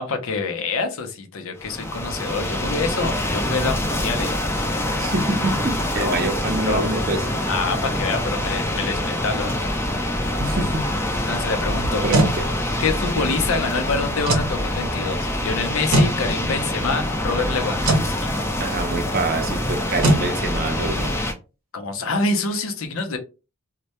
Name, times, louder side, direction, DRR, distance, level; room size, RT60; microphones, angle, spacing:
voice 1, 0.0-4.4 6.0-6.2 6.6-6.9 7.5-9.5 11.3-12.1 12.8-18.3 21.7-23.2, left 4 dB, 65° left, 0.5 m, -26 dB
sound 1, 1.6-21.3, left 1 dB, 10° left, 0.3 m, -25 dB
voice 2, 5.0-7.2 10.4-10.9 11.9-12.5 18.6-21.1, right 2 dB, 45° right, 0.5 m, -26 dB
sound 2, 11.8-12.4 14.2-14.5 15.9-16.2 17.8-18.1 20.0-20.3, right 1 dB, 80° right, 0.7 m, -19 dB
2.1 x 2.1 x 2.8 m
head